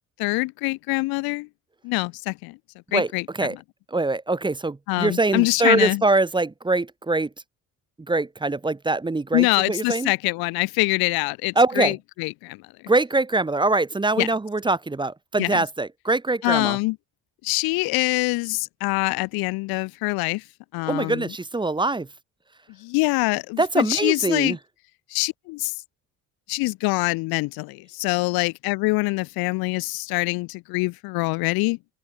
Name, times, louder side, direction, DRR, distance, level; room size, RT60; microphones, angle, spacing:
voice 1, 0.2-1.5 1.8-2.6 2.9-3.2 4.9-6.0 9.3-12.6 14.2-14.3 15.4-15.6 16.4-17.0 17.4-20.4 20.7-21.2 22.8-24.6 25.1-25.7 26.5-31.8, left 24 dB, 85° left, 0.6 m, -24 dB
voice 2, 2.9-3.6 3.9-7.3 8.0-10.1 11.6-12.0 12.9-16.8 20.9-22.1 23.6-24.6, right 2 dB, 15° right, 0.7 m, -23 dB
open air
supercardioid pair, 80°, 36 cm